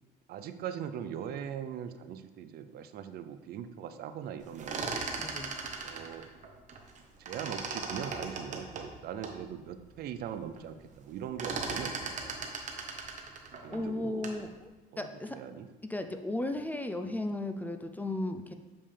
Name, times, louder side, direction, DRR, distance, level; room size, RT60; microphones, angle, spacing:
voice 1, 0.3-5.0 5.8-6.3 7.2-12.5 13.6-14.4 14.9-15.7, right 9 dB, 65° right, 11 dB, 0.5 m, -41 dB
sound 1, 4.4-7.0 7.3-9.4 9.9-10.0 10.3-10.7 10.9-14.5, right 4 dB, 45° right, 0.9 m, -38 dB
voice 2, 5.2-5.5 13.7-14.7 15.0-15.4 15.9-18.5, left 2 dB, 10° left, 7 dB, 0.4 m, -35 dB
7.0 x 5.4 x 3.3 m, 1.2 s
cardioid pair, 110°, 17 cm